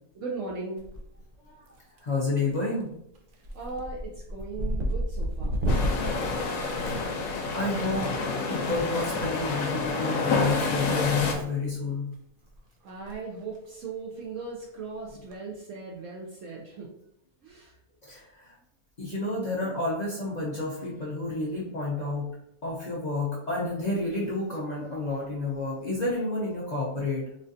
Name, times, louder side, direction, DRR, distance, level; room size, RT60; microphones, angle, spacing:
voice 1, 0.1-0.9 3.5-5.6 12.8-16.9 17.4-17.8, right 4 dB, 65° right, -2 dB, 0.9 m, -38 dB
sound 1, 0.8-1.3 1.7-2.2 2.5-2.8 3.1-7.6 8.9-9.1 10.3-11.1 11.4-11.6 12.1-12.2 12.5-12.6 12.9-13.1 13.4-13.5 15.1-15.3, equal, 85° right, 0.4 m, -31 dB
voice 2, 2.0-2.9 6.8-7.1 7.5-8.1 8.5-12.1 18.0-18.5 19.0-22.3 22.6-27.2, left 2 dB, 55° left, -5 dB, 0.4 m, -30 dB
sound 2, 5.7-11.3, left 3 dB, 75° left, 1.1 m, -28 dB
4.2 x 2.4 x 2.6 m, 0.76 s
omnidirectional pair, 1.6 m